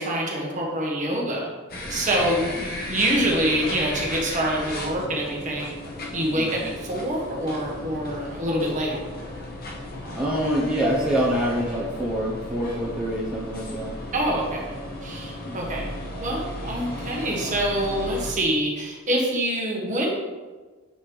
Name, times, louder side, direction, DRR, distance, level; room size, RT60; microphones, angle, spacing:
voice 1, 0.0-1.5 1.9-5.7 6.1-9.0 14.1-14.6 15.0-15.9 16.2-20.1, right 1 dB, 35° right, -2 dB, 1.3 m, -26 dB
sound 1, 1.7-18.3, left 1 dB, 45° left, 1.2 m, -35 dB
voice 2, 6.3-6.7 10.2-14.0 15.4-15.8, equal, 5° right, -6 dB, 1.0 m, -26 dB
7.7 x 5.1 x 3.5 m, 1.3 s
head